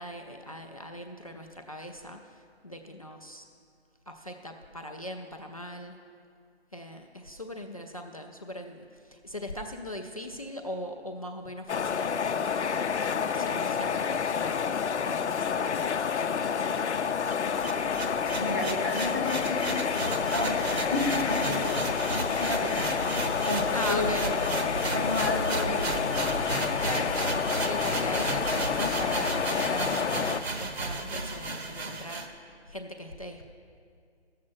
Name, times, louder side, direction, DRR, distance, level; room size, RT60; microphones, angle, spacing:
voice 1, 0.0-3.5 4.1-6.0 6.7-14.6 15.1-15.9 16.2-16.7 23.7-24.3 26.8-27.1 27.6-33.5, equal, 35° left, 4 dB, 0.4 m, -40 dB
sound 1, 11.7-30.4, left 6 dB, 85° left, 0.7 m, -29 dB
sound 2, 17.3-32.3, right 2 dB, 70° right, 1.2 m, -33 dB
voice 2, 18.4-19.8 20.3-21.8 22.1-24.4 24.9-25.9, left 2 dB, 20° right, -1 dB, 0.5 m, -32 dB
11.5 x 7.5 x 6.1 m, 2.3 s
hypercardioid pair, 170°, 33 cm